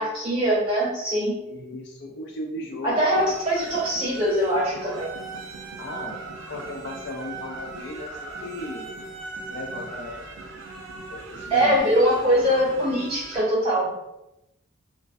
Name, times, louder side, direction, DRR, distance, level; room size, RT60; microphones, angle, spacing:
voice 1, 0.0-1.3 2.8-5.1 11.5-13.9, equal, 30° right, -7 dB, 1.4 m, -22 dB
voice 2, 1.4-3.3 5.8-6.2 6.5-8.9 9.5-10.3 11.1-11.9, left 1 dB, 55° left, 1 dB, 0.4 m, -36 dB
sound 1, 3.1-13.4, right 3 dB, 70° right, 0.5 m, -39 dB
2.4 x 2.1 x 2.4 m, 0.90 s
head